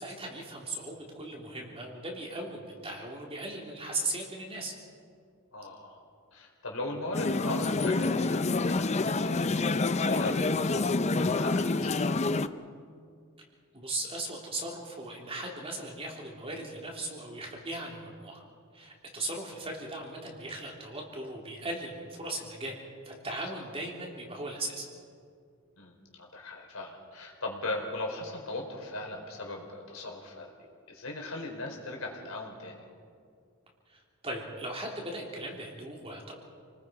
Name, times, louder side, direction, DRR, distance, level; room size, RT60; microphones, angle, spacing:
voice 1, 0.0-4.7 13.7-18.4 18.7-22.8 23.0-24.9 33.9-36.3, right 2 dB, 25° right, -1 dB, 3.3 m, -38 dB
voice 2, 5.5-6.0 6.3-12.2 25.8-30.5 30.9-32.8, left 2 dB, 70° left, 0 dB, 4.5 m, -39 dB
sound 1, 7.1-12.5, left 3 dB, 30° left, 0.6 m, -27 dB
29.0 x 20.0 x 5.2 m, 2.3 s
head